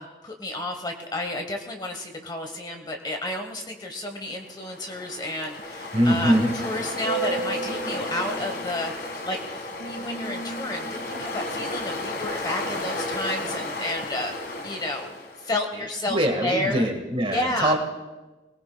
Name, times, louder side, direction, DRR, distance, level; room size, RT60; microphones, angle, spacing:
voice 1, 0.0-6.3 6.6-15.1 15.4-16.9 17.3-17.8, left 1 dB, 20° left, 4 dB, 1.1 m, -31 dB
Ocean, 4.5-15.6, equal, 50° left, 1.8 m, -32 dB
voice 2, 5.9-6.5 15.7-17.8, equal, 30° right, 4 dB, 1.6 m, -23 dB
21.5 x 19.5 x 2.3 m, 1.2 s
head